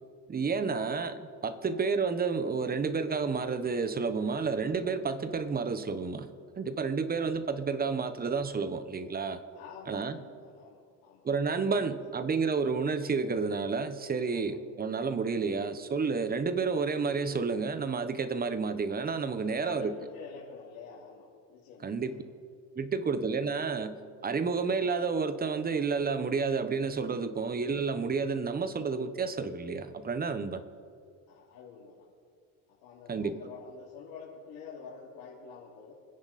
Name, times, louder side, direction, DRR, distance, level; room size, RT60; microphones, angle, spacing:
voice 1, 0.3-6.3 6.6-9.4 9.9-10.2 11.2-20.0 21.8-22.2 22.8-30.6 33.1-33.4, right 5 dB, 25° right, 11 dB, 1.2 m, -30 dB
voice 2, 9.5-11.3 11.7-12.0 14.3-14.5 19.3-22.2 22.7-22.9 31.3-32.1 32.7-35.9, left 6 dB, 80° left, -7 dB, 3.2 m, -48 dB
26.5 x 10.5 x 4.3 m, 2.2 s
cardioid pair, 115°, 36 cm